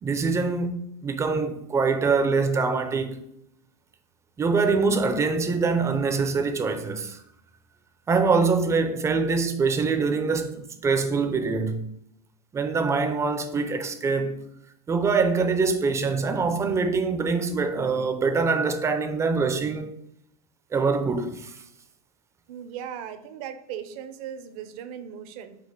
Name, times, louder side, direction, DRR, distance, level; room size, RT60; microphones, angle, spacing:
voice 1, 0.0-3.2 4.4-7.2 8.1-11.9 12.5-14.4 14.9-20.0 20.7-21.6, right 4 dB, 15° right, 0.4 m, -24 dB
voice 2, 22.5-25.6, right 9 dB, 65° right, 0.6 m, -38 dB
5.0 x 2.5 x 3.6 m
supercardioid pair, 125°, 21 cm